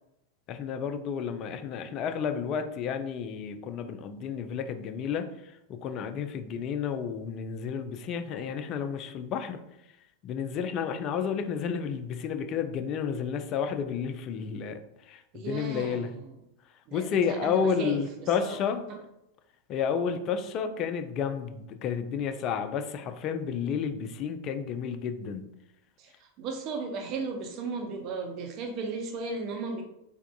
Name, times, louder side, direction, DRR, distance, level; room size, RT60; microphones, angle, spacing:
voice 1, 0.5-9.6 10.2-16.1 16.9-18.9 19.7-25.4, left 7 dB, 35° left, 8 dB, 0.3 m, -31 dB
voice 2, 15.3-16.3 16.9-18.6 26.0-29.8, right 4 dB, 40° right, 3 dB, 0.5 m, -36 dB
3.5 x 3.4 x 2.3 m, 0.84 s
figure-of-eight pair, 90°, 0 cm